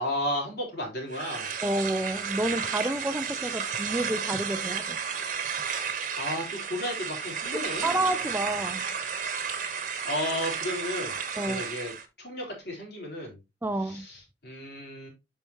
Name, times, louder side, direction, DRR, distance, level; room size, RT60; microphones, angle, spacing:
voice 1, 0.0-1.5 6.2-7.9 9.6-11.1 11.5-11.9 12.2-13.4 13.8-15.1, left 1 dB, 60° left, 3.7 m, -33 dB
sound 1, 1.1-12.1, right 6 dB, 45° right, 1.1 m, -33 dB
voice 2, 1.6-5.0 7.5-8.9 11.4-11.6 13.6-14.0, right 1 dB, 10° right, 0.4 m, -29 dB
7.9 x 5.7 x 2.9 m
head